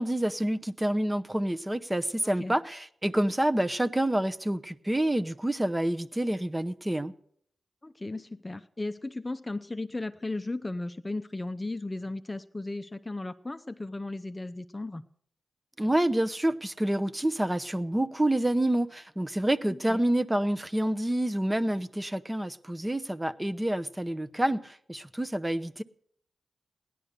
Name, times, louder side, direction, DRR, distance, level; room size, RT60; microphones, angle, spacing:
voice 1, 0.0-7.1 15.8-25.8, right 1 dB, 15° right, 0.8 m, -28 dB
voice 2, 2.2-2.6 7.8-15.0 19.9-20.0, left 2 dB, 25° left, 0.6 m, -36 dB
16.5 x 11.0 x 6.7 m
cardioid pair, 45°, 0 cm